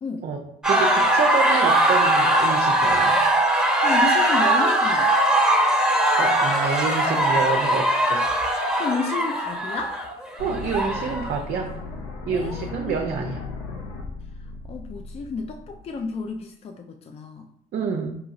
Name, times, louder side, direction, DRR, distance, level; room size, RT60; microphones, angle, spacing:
voice 1, 0.2-3.2 6.2-8.2 10.4-11.8 12.3-13.5 17.7-18.2, right 5 dB, 50° right, 2 dB, 0.5 m, -28 dB
sound 1, 0.6-11.4, right 1 dB, 5° right, 1.0 m, -20 dB
voice 2, 3.8-5.1 8.8-10.0 12.3-13.0 14.7-17.5, left 4 dB, 30° left, 4 dB, 0.4 m, -31 dB
sound 2, 10.4-16.4, left 3 dB, 75° left, 0.6 m, -37 dB
4.6 x 3.0 x 2.5 m, 0.74 s
hypercardioid pair, 45°, 20 cm